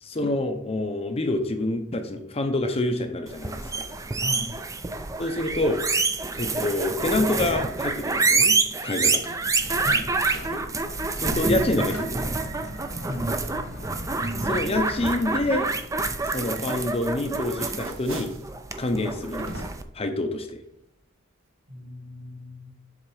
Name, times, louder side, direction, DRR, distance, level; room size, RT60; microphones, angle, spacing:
voice 1, 0.0-3.9 5.2-5.8 6.3-9.2 10.5-10.6 11.2-12.3 14.4-15.7 16.3-18.3 18.8-19.6 19.9-20.6, left 1 dB, 30° left, 6 dB, 0.6 m, -27 dB
sound 1, 3.3-19.8, right 3 dB, 15° right, 0.4 m, -27 dB
sound 2, 3.6-15.6, left 1 dB, 85° left, 1.7 m, -44 dB
voice 2, 4.2-4.5 9.8-10.1 13.0-13.3 21.7-22.8, left 1 dB, 45° right, 0 dB, 2.2 m, -36 dB
sound 3, 17.6-18.5 19.4-20.0, right 2 dB, 65° right, 1.0 m, -41 dB
7.4 x 4.0 x 4.8 m, 0.76 s
head